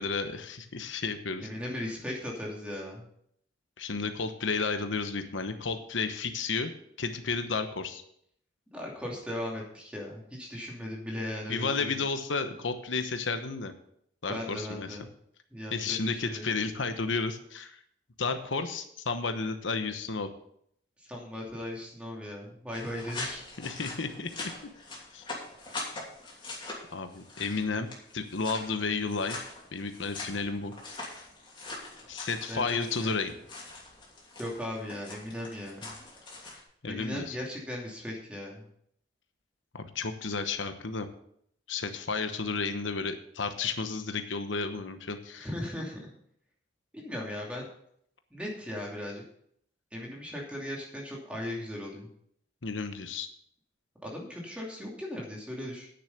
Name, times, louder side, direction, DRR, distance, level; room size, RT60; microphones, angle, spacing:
voice 1, 0.0-1.5 3.8-6.7 7.0-8.0 11.5-13.7 14.2-15.0 15.7-17.8 18.2-20.3 23.6-24.5 25.1-25.2 26.9-27.9 28.1-29.4 29.7-30.7 32.1-33.3 36.8-37.4 39.7-41.1 41.7-45.5 52.6-53.3, left 4 dB, 90° left, 8 dB, 1.1 m, -32 dB
voice 2, 1.4-3.1 8.7-12.0 14.3-15.1 15.5-16.5 21.1-23.4 32.5-33.3 34.4-35.9 36.8-38.6 45.4-46.1 46.9-47.7 48.3-49.2 49.9-52.1 54.0-55.9, left 1 dB, 5° right, -2 dB, 2.7 m, -38 dB
sound 1, 22.7-36.6, left 2 dB, 25° left, 2.9 m, -43 dB
9.7 x 6.9 x 6.7 m, 0.69 s
head